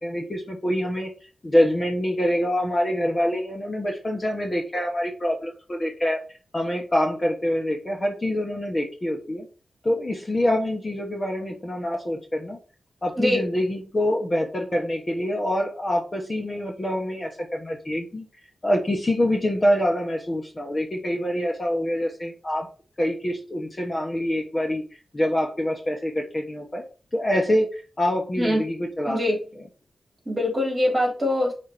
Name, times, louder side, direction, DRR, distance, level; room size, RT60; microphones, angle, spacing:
voice 1, 0.0-1.1 1.4-6.2 6.5-9.5 9.8-12.6 13.0-18.3 18.6-22.7 23.0-24.8 25.1-26.9 27.1-29.2, left 1 dB, 25° left, 1 dB, 1.2 m, -25 dB
voice 2, 29.0-29.4 30.2-31.5, left 1 dB, 15° right, -1 dB, 3.2 m, -23 dB
5.6 x 4.3 x 4.9 m, 0.35 s
wide cardioid pair, 145°, 0 cm